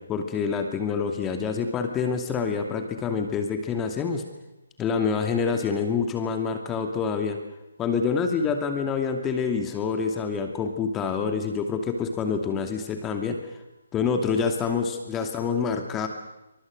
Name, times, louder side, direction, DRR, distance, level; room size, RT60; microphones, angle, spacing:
voice 1, 0.0-4.2 4.8-7.4 7.8-13.4 13.9-16.1, left 5 dB, 15° left, 5 dB, 2.6 m, -27 dB
28.0 x 25.0 x 6.6 m, 0.95 s
figure-of-eight pair, 140°, 0 cm